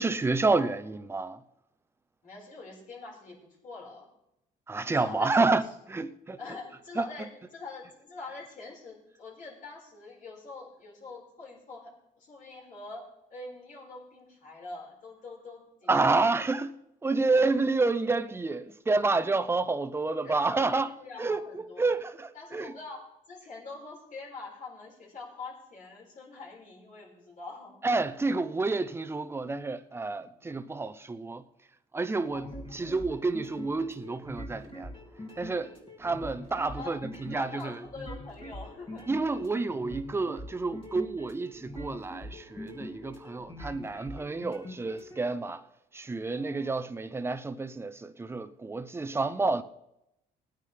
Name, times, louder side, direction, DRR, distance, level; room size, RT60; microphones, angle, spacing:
voice 1, 0.0-1.4 4.7-6.4 7.0-7.1 15.9-16.7 17.0-22.7 27.8-31.4 31.9-32.5 32.7-34.9 35.4-35.7 36.0-37.8 39.1-45.6 45.9-49.6, right 3 dB, 15° right, 0.6 m, -29 dB
voice 2, 2.2-4.1 4.8-5.6 6.4-16.1 19.9-21.9 22.3-27.8 30.0-30.3 32.2-32.9 36.5-39.1 46.3-46.8 49.1-49.3, left 3 dB, 50° left, 4.9 m, -45 dB
sound 1, 32.3-45.2, left 1 dB, 30° left, 2.6 m, -44 dB
19.0 x 9.4 x 3.3 m
cardioid pair, 110°, 17 cm